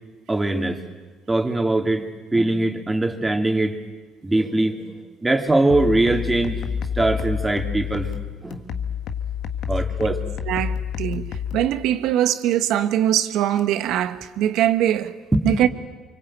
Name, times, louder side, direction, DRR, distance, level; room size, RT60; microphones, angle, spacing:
voice 1, 0.3-0.8 1.3-3.8 4.2-6.6 6.9-8.1 8.4-8.7 9.7-10.3 15.3-15.5, right 2 dB, 15° right, 2.9 m, -22 dB
sound 1, 5.7-11.7, left 7 dB, 70° left, 1.6 m, -29 dB
voice 2, 10.5-15.1 15.4-15.7, right 11 dB, 75° right, 1.4 m, -22 dB
24.5 x 24.5 x 9.0 m
supercardioid pair, 75°, 0 cm